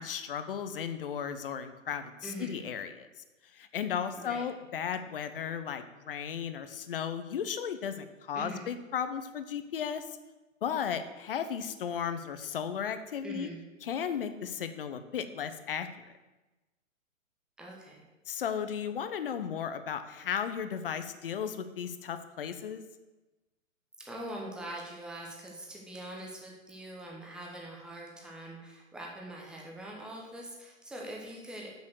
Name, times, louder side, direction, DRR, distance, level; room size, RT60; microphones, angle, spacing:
voice 1, 0.0-3.1 3.5-10.0 10.6-13.5 13.8-15.9 18.3-22.8, left 8 dB, 45° left, 10 dB, 0.8 m, -35 dB
voice 2, 2.2-2.6 4.2-4.5 8.3-8.7 13.2-13.6 17.6-18.0 24.0-31.7, right 1 dB, ahead, -2 dB, 1.0 m, -43 dB
7.3 x 6.3 x 6.4 m, 1.1 s
figure-of-eight pair, 120°, 40 cm